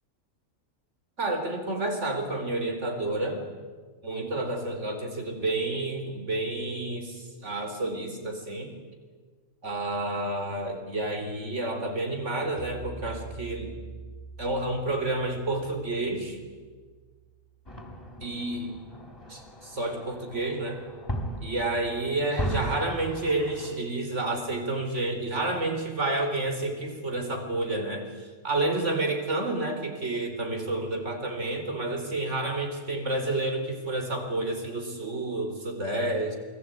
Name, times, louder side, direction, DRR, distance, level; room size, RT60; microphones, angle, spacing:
voice 1, 1.2-3.4 4.0-8.7 9.6-13.7 14.4-16.4 18.2-18.7 19.3-20.8 21.4-36.4, right 2 dB, 60° right, 4 dB, 4.5 m, -30 dB
sound 1, 12.6-18.0, right 3 dB, 15° right, 2.8 m, -45 dB
sound 2, 17.7-23.8, equal, 20° left, 3.5 m, -37 dB
28.5 x 21.0 x 9.3 m, 1.5 s
omnidirectional pair, 1.4 m